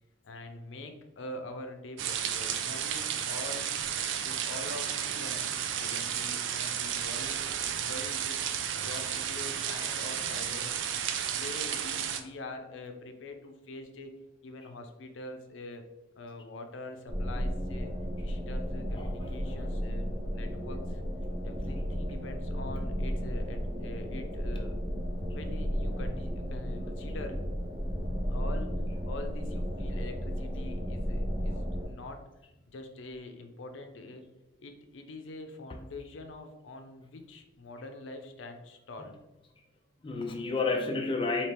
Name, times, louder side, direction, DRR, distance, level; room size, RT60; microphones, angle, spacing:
voice 1, 0.2-3.7 4.2-8.4 8.8-10.9 11.3-14.1 14.4-15.8 16.2-17.9 18.2-21.0 21.4-24.7 25.3-27.4 28.3-28.7 29.1-32.2 32.7-34.2 34.6-39.1, left 2 dB, 80° left, 5 dB, 0.5 m, -44 dB
sound 1, 2.0-12.2, right 9 dB, 80° right, 0.4 m, -33 dB
sound 2, 17.1-31.9, equal, 15° right, 1.0 m, -33 dB
voice 2, 19.0-19.7 40.0-41.5, left 3 dB, 25° left, 2 dB, 0.3 m, -31 dB
4.3 x 2.9 x 3.3 m, 0.97 s
head